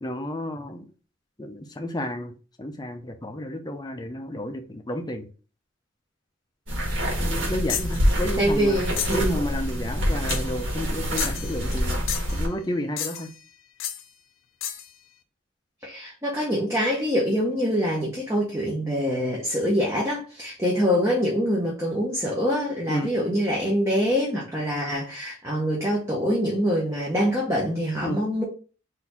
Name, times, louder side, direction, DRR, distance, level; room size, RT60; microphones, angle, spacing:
voice 1, 0.0-0.8 1.4-2.3 2.6-5.3 7.2-8.8 9.1-12.0 12.3-13.3 22.9-23.1 28.0-28.2, equal, 20° left, 0.5 m, -31 dB
sound 1, 6.7-12.5, equal, 75° right, 1.5 m, -26 dB
sound 2, 7.7-8.0 9.0-9.3 10.3-10.6 11.2-11.8 12.1-12.4 13.0-13.4 13.8-14.0 14.6-14.9, left 10 dB, 85° left, 0.5 m, -31 dB
voice 2, 8.4-9.4 15.8-28.4, equal, 15° right, 0.8 m, -25 dB
4.0 x 2.7 x 4.2 m
head